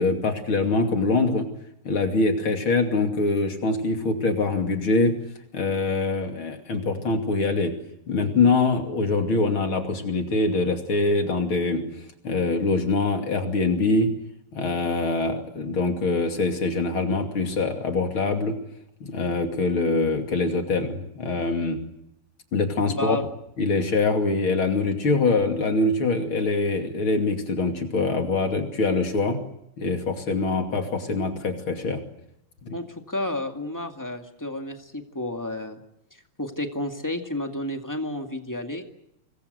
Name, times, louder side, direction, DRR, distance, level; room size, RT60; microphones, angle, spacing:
voice 1, 0.0-1.5 1.8-5.2 5.5-7.7 8.1-11.8 12.2-14.1 14.5-18.5 19.0-21.8 22.5-23.2 23.6-29.4 29.8-32.0 32.6-32.8, left 3 dB, 40° left, 5 dB, 3.1 m, -24 dB
voice 2, 22.9-23.2 32.7-35.8 36.1-38.8, left 1 dB, 10° left, 5 dB, 1.1 m, -31 dB
26.5 x 21.0 x 8.0 m, 0.81 s
omnidirectional pair, 3.9 m